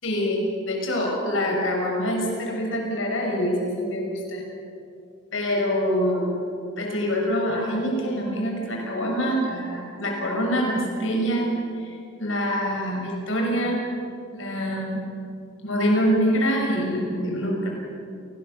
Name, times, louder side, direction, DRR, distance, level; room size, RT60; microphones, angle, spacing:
voice 1, 0.0-0.4 0.6-4.4 5.3-6.4 6.8-11.5 11.8-13.9 14.3-15.0 15.6-17.7, equal, 85° left, 0 dB, 6.4 m, -25 dB
29.0 x 19.0 x 6.9 m, 2.5 s
head